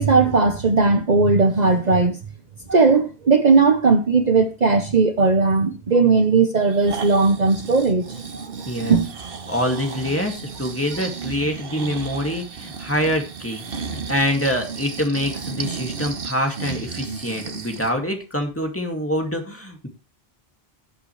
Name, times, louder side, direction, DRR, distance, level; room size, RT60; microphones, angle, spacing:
voice 1, 0.0-2.2 2.7-8.0 8.3-8.5 8.9-9.1, right 4 dB, 45° right, 1.0 m, -17 dB
Breathing, 6.6-18.0 18.4-18.5, right 5 dB, 65° right, 1.3 m, -34 dB
voice 2, 8.7-9.0 9.5-13.6 13.9-19.9, equal, 15° left, 2.3 m, -25 dB
18.0 x 8.0 x 3.2 m
omnidirectional pair, 1.0 m